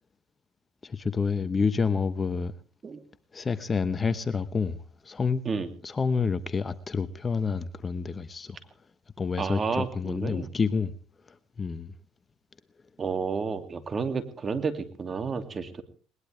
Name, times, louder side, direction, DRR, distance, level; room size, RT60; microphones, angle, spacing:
voice 1, 0.8-2.5 3.3-4.8 5.0-5.4 5.8-8.6 9.2-10.9 11.6-11.9, left 5 dB, 25° left, 1.1 m, -28 dB
voice 2, 9.4-10.5 13.0-15.8, right 5 dB, 30° right, 2.6 m, -31 dB
20.5 x 20.0 x 3.4 m
supercardioid pair, 95°, 0 cm